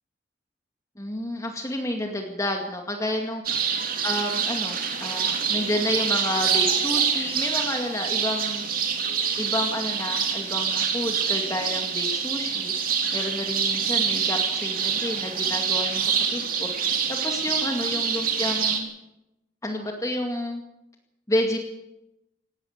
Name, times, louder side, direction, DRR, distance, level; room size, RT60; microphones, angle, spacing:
voice 1, 1.0-3.4 4.0-8.6 9.4-16.7 17.1-18.9 19.6-20.6 21.3-21.6, left 1 dB, 20° left, 2 dB, 2.2 m, -30 dB
sound 1, 3.4-18.8, right 6 dB, 55° right, 3.4 m, -26 dB
18.5 x 18.0 x 8.1 m, 0.89 s
head